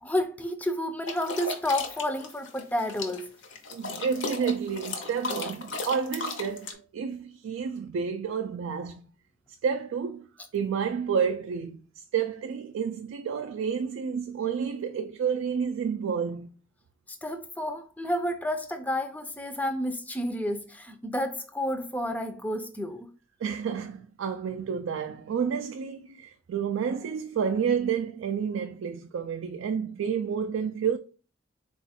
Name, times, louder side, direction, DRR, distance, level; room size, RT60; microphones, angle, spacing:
voice 1, 0.0-3.3 17.1-23.1, left 1 dB, 10° left, 0.4 m, -30 dB
sound 1, 1.0-6.7, left 3 dB, 70° left, 0.7 m, -35 dB
voice 2, 3.7-9.0 9.6-10.3 10.5-16.5 23.4-31.0, right 7 dB, 80° right, 0.3 m, -30 dB
4.0 x 2.3 x 4.1 m
head